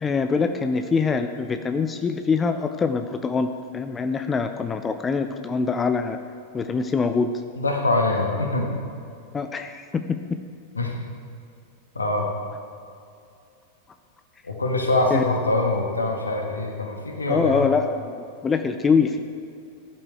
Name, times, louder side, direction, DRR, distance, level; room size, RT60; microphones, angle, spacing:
voice 1, 0.0-6.2 6.5-7.3 9.3-10.4 15.1-15.2 17.3-18.1 18.4-19.2, left 5 dB, 20° left, 8 dB, 0.5 m, -24 dB
voice 2, 7.6-8.7 10.7-10.9 11.9-12.3 14.4-17.6, left 2 dB, 75° left, 2 dB, 1.6 m, -24 dB
15.5 x 11.0 x 3.5 m, 2.5 s
figure-of-eight pair, 90°, 0 cm